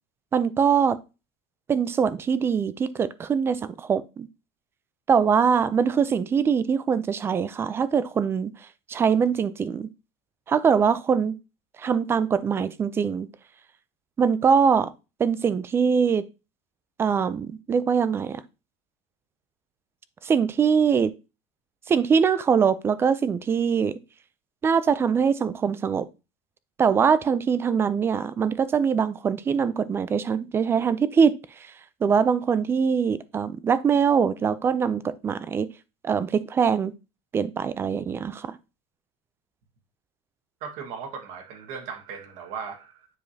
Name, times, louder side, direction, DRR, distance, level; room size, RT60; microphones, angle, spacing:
voice 1, 0.3-1.0 1.7-4.3 5.1-8.5 8.9-9.9 10.5-11.3 11.8-13.3 14.2-14.9 15.2-16.2 17.0-18.4 20.2-21.1 21.9-24.0 24.6-26.1 26.8-31.4 31.6-31.7 32.0-35.7 36.0-36.9 37.3-38.6, right 6 dB, 15° right, 0.4 m, -23 dB
voice 2, 40.6-43.1, right 6 dB, 55° right, 1.6 m, -37 dB
9.4 x 4.8 x 2.8 m
cardioid pair, 165°, 15 cm